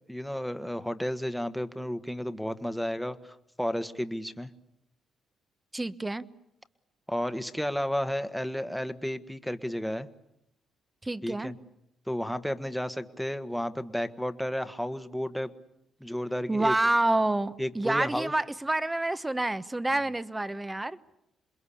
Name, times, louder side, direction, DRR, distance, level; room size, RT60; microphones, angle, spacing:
voice 1, 0.1-3.2 3.6-4.5 7.1-10.1 11.2-11.5 12.1-15.5 16.0-16.7 17.6-18.3, equal, ahead, 1.4 m, -32 dB
voice 2, 5.7-6.2 11.0-11.5 16.5-21.0, right 2 dB, 15° right, 1.1 m, -28 dB
27.5 x 21.5 x 8.6 m
cardioid pair, 90°, 0 cm